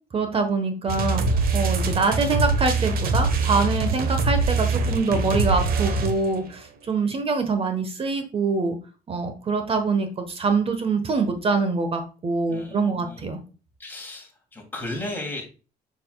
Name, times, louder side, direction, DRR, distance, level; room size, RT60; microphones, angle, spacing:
voice 1, 0.1-1.2 1.5-8.8 9.1-13.4, right 4 dB, 35° right, 7 dB, 1.3 m, -24 dB
sound 1, 0.9-6.5, right 3 dB, 60° right, 1.3 m, -23 dB
voice 2, 12.5-13.2 13.8-15.5, left 2 dB, 10° left, 0 dB, 2.9 m, -35 dB
6.8 x 6.1 x 2.4 m, 0.34 s
cardioid pair, 110°, 17 cm